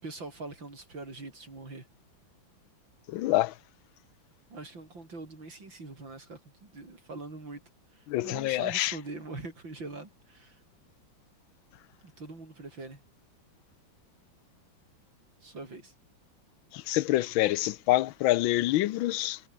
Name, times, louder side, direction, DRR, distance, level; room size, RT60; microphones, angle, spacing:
voice 1, 0.0-1.9 4.5-7.6 7.9-10.6 12.0-13.0 15.4-15.9, right 3 dB, 65° right, 6.9 m, -43 dB
voice 2, 3.1-3.6 8.1-9.0 16.7-19.4, left 16 dB, 80° left, 1.5 m, -26 dB
omnidirectional pair, 2.2 m